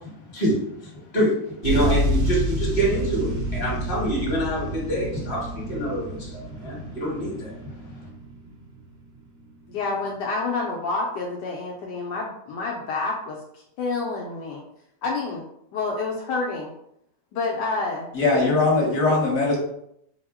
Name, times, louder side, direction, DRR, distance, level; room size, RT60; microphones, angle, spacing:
voice 1, 0.3-1.4 1.6-7.5 7.9-8.0, right 1 dB, 30° left, -4 dB, 1.3 m, -26 dB
sound 1, 1.6-9.2 9.9-10.0, equal, 75° right, 0.6 m, -29 dB
voice 2, 9.7-14.6 15.0-15.4 15.7-16.7 17.3-18.1 18.4-18.5, left 3 dB, 75° left, -1 dB, 1.2 m, -28 dB
voice 3, 18.1-19.6, left 3 dB, 50° left, -2 dB, 1.3 m, -20 dB
4.3 x 2.1 x 3.4 m, 0.75 s
omnidirectional pair, 1.9 m